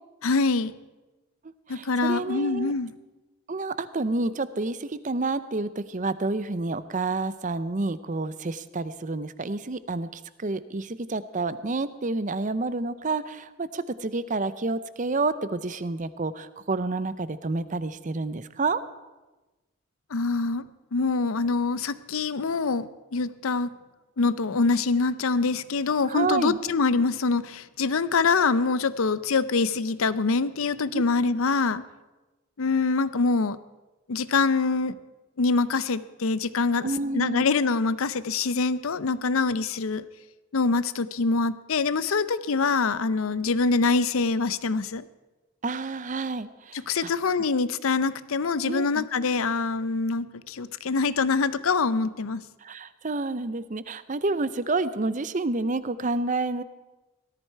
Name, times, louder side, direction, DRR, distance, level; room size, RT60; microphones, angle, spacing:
voice 1, 0.2-0.7 1.7-2.9 20.1-20.6 20.9-23.7 24.2-31.8 32.6-33.6 34.1-34.9 35.4-40.0 40.5-45.0 46.7-52.4, left 4 dB, 75° left, 16 dB, 0.6 m, -25 dB
voice 2, 1.7-2.7 3.5-18.8 26.1-26.6 30.9-31.0 36.8-37.5 45.6-47.1 48.7-49.1 52.6-56.6, right 3 dB, 35° right, 15 dB, 0.6 m, -29 dB
18.0 x 13.5 x 4.6 m, 1.1 s
head